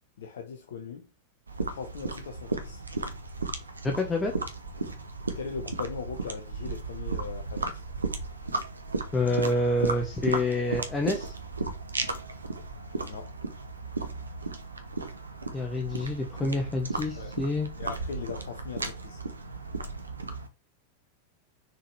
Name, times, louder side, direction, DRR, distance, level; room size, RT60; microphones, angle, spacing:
voice 1, 0.2-1.1 1.7-2.8 5.3-7.8 13.1-13.3 17.1-17.5 17.8-19.2, left 6 dB, 60° left, 0.9 m, -39 dB
sound 1, 1.5-20.5, right 3 dB, 75° right, 0.9 m, -35 dB
voice 2, 3.8-4.3 9.1-11.3 15.5-17.7, left 2 dB, 15° left, 1.1 m, -27 dB
6.3 x 4.8 x 3.3 m
figure-of-eight pair, 90°, 0 cm